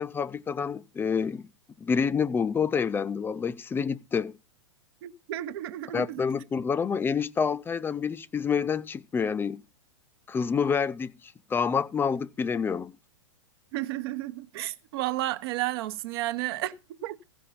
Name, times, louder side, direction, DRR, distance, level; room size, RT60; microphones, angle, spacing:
voice 1, 0.0-1.4 1.8-4.4 5.9-9.6 10.3-11.1 11.5-12.9, left 6 dB, 15° left, 0.5 m, -28 dB
voice 2, 5.0-6.2 13.7-16.8 17.0-17.2, right 16 dB, 50° right, 0.9 m, -32 dB
15.5 x 5.3 x 5.7 m
hypercardioid pair, 110°, 16 cm